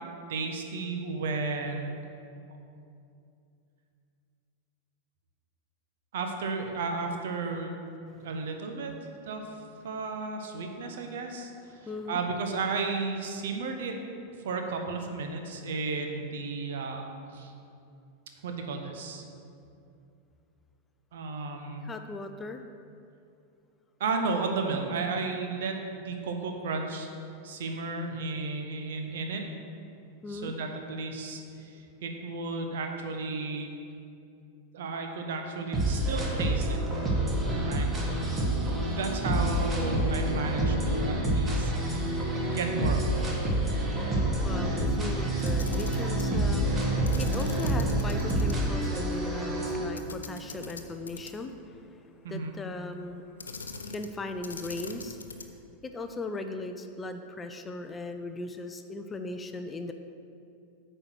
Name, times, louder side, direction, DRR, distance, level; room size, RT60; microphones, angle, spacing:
voice 1, 0.3-1.9 6.1-7.7 8.2-8.9 9.2-9.4 9.8-11.5 12.1-13.9 14.4-17.1 17.3-17.5 18.4-19.2 21.1-21.9 24.0-27.1 27.4-29.4 30.3-33.7 34.7-36.8 37.6-37.9 38.9-41.7 42.5-43.2 52.2-52.5, right 4 dB, 60° right, 4 dB, 0.9 m, -33 dB
voice 2, 11.7-12.2 21.8-22.6 30.2-30.6 44.4-53.6 53.9-55.2 55.8-59.9, left 2 dB, 15° left, 7 dB, 0.4 m, -38 dB
sound 1, 35.7-49.8, right 1 dB, 20° right, 1.4 m, -28 dB
Camera, 45.4-46.3 47.1-48.5 48.9-49.0 50.0-51.6 53.4-54.2 54.4-55.6, left 4 dB, 70° left, 0.6 m, -42 dB
8.6 x 4.5 x 6.2 m, 2.5 s
figure-of-eight pair, 90°, 0 cm